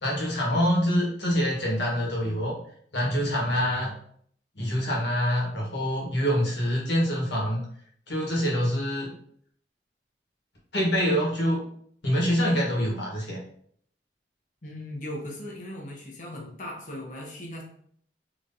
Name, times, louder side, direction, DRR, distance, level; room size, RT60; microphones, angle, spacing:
voice 1, 0.0-2.6 2.9-3.9 4.5-7.6 8.1-9.1 10.7-11.6 12.0-13.4, equal, 80° left, -3 dB, 1.4 m, -25 dB
voice 2, 14.6-17.6, left 1 dB, 45° left, -1 dB, 0.9 m, -38 dB
3.7 x 3.0 x 2.6 m, 0.63 s
head